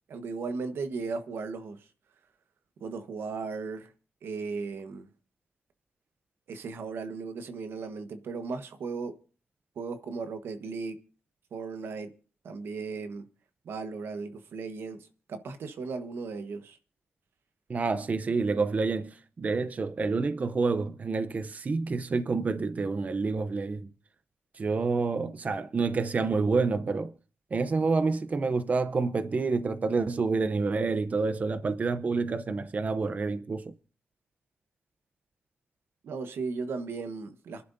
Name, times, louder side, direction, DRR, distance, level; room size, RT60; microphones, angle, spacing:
voice 1, 0.1-1.9 2.8-3.9 4.2-5.1 6.5-9.2 9.7-11.0 11.5-12.1 12.4-13.3 13.6-16.8 36.0-37.7, right 4 dB, 80° right, 1.3 m, -36 dB
voice 2, 17.7-23.9 24.5-27.1 27.5-33.7, right 4 dB, 40° right, 0.7 m, -28 dB
27.5 x 11.0 x 2.7 m
cardioid pair, 90°, 4 cm